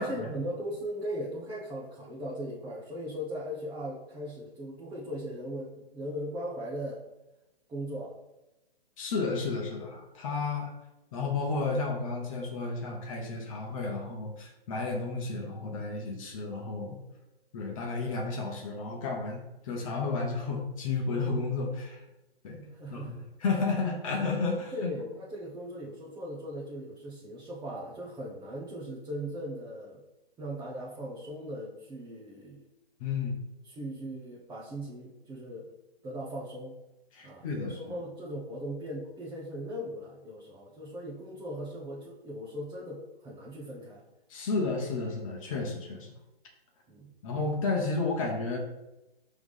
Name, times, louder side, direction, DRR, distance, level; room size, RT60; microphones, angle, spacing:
voice 1, 0.0-7.0 7.7-8.1 22.7-23.2 24.7-30.0 30.4-32.6 33.6-35.7 36.0-36.8 37.2-44.0 46.9-47.1, equal, 10° right, -8 dB, 0.8 m, -38 dB
voice 2, 9.0-10.7 11.1-17.0 17.5-22.0 22.4-24.9 33.0-33.3 37.1-37.8 44.3-46.1 47.2-48.6, left 3 dB, 35° left, 0 dB, 1.1 m, -32 dB
6.0 x 3.5 x 5.4 m, 0.96 s
figure-of-eight pair, 135°, 32 cm